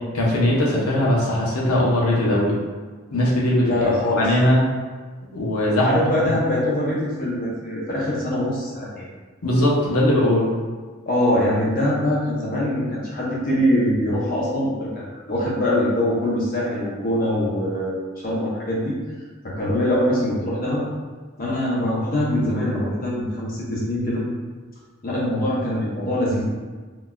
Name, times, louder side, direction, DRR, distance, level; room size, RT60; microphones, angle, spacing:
voice 1, 0.2-2.5 3.1-3.7 4.2-4.6 5.3-5.9 9.4-10.5, left 1 dB, 85° left, -4 dB, 0.7 m, -19 dB
voice 2, 3.6-4.3 5.8-9.0 11.0-18.9 19.4-20.8 21.4-24.2 25.0-26.4, left 1 dB, 40° left, -6 dB, 0.6 m, -23 dB
3.8 x 2.4 x 2.2 m, 1.4 s
head